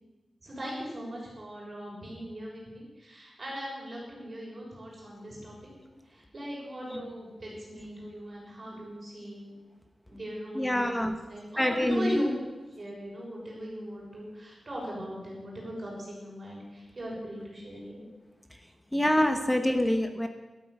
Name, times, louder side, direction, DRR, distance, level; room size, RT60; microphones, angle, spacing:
voice 1, 0.4-5.7 6.1-9.5 10.1-12.3 12.8-18.0, equal, 30° right, -4 dB, 6.8 m, -39 dB
voice 2, 10.5-11.2 11.6-12.2 18.9-20.3, left 1 dB, 10° left, 6 dB, 1.1 m, -26 dB
13.0 x 12.5 x 8.2 m, 1.2 s
wide cardioid pair, 165°, 0 cm